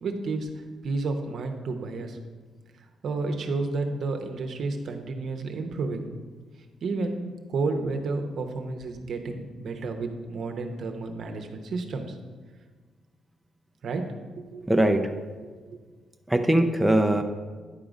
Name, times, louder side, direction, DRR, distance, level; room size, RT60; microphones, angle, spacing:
voice 1, 0.0-2.2 3.0-6.1 6.8-12.2 13.8-14.7 15.4-15.7, right 3 dB, 65° right, 4 dB, 0.8 m, -31 dB
voice 2, 14.7-15.0 16.3-17.2, right 1 dB, 5° right, 4 dB, 0.5 m, -21 dB
10.0 x 3.8 x 4.9 m, 1.4 s
cardioid pair, 90°, 0 cm